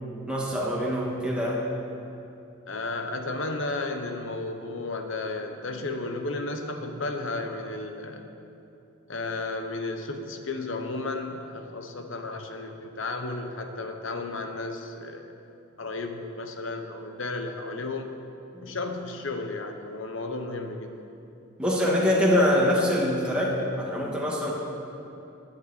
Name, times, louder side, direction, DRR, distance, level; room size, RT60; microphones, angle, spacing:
voice 1, 0.3-1.6 18.5-18.7 21.6-24.5, left 1 dB, 5° right, -4 dB, 1.7 m, -24 dB
voice 2, 2.7-8.3 9.1-15.3 15.8-18.1 18.6-21.0, left 2 dB, 65° left, 5 dB, 1.1 m, -33 dB
16.5 x 10.5 x 4.2 m, 2.8 s
head